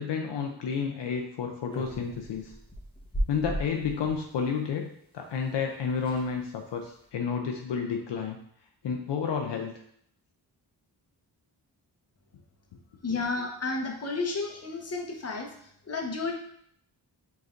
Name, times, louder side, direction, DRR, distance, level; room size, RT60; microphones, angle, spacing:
voice 1, 0.0-2.5 3.3-4.9 5.1-8.4 8.8-9.7, left 6 dB, 70° left, 2 dB, 0.5 m, -31 dB
door slaming open, 1.7-4.2 5.4-5.5 5.7-5.8 6.0-6.3 6.8-7.1, equal, 10° left, 1.1 m, -36 dB
voice 2, 13.0-15.5 15.9-16.3, left 3 dB, 35° left, 2 dB, 0.9 m, -31 dB
5.0 x 3.2 x 2.5 m, 0.69 s
cardioid pair, 50°, 44 cm